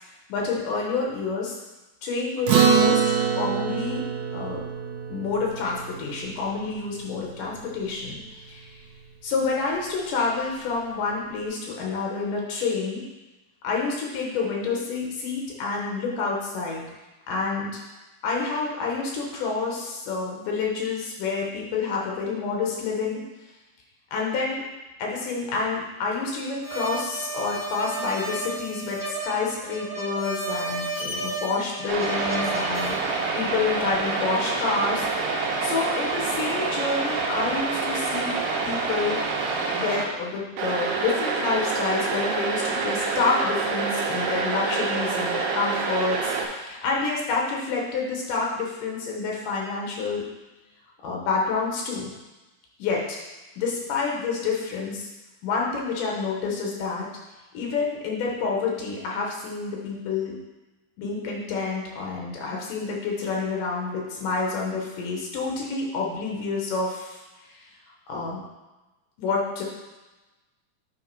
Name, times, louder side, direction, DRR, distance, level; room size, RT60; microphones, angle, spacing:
voice 1, 0.3-1.6 2.0-3.0 3.3-4.7 5.1-8.2 8.5-8.8 9.2-13.0 13.6-16.8 17.3-17.8 18.2-23.2 24.1-24.6 25.0-38.3 38.6-39.2 39.7-50.2 51.0-52.1 52.8-53.2 53.6-55.1 55.4-57.1 57.5-60.4 61.0-67.7 68.1-68.4 69.2-69.6, left 4 dB, 80° left, -2 dB, 2.7 m, -28 dB
Acoustic guitar, 2.5-7.2, right 7 dB, 70° right, 1.9 m, -24 dB
sound 1, 26.6-33.0, right 2 dB, 25° right, 1.0 m, -33 dB
sound 2, 31.9-40.0 40.6-46.5, right 4 dB, 85° right, 2.6 m, -27 dB
9.1 x 3.6 x 4.6 m, 1.1 s
omnidirectional pair, 3.7 m